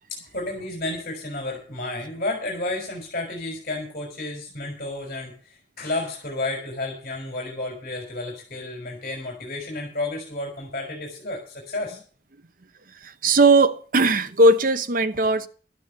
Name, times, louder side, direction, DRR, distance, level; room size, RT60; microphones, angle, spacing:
voice 1, 0.1-12.0, left 2 dB, 50° left, 4.2 m, -31 dB
voice 2, 12.9-15.5, right 2 dB, 50° right, 0.9 m, -18 dB
12.0 x 8.5 x 6.7 m
head